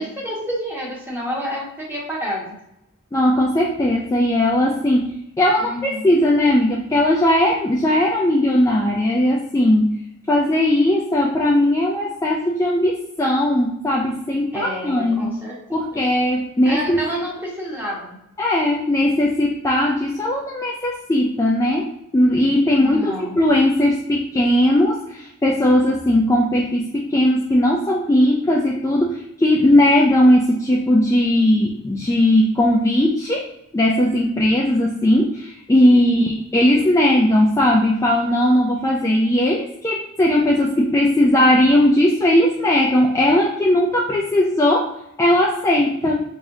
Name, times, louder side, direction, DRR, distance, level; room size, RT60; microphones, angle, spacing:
voice 1, 0.0-2.5 5.6-6.1 14.5-15.8 16.6-18.2 22.8-23.4 36.2-36.4, equal, 10° right, -4 dB, 1.1 m, -29 dB
voice 2, 3.1-10.0 10.3-15.3 15.7-17.0 18.4-46.2, left 1 dB, 15° left, -2 dB, 0.3 m, -18 dB
3.4 x 3.3 x 2.6 m, 0.83 s
head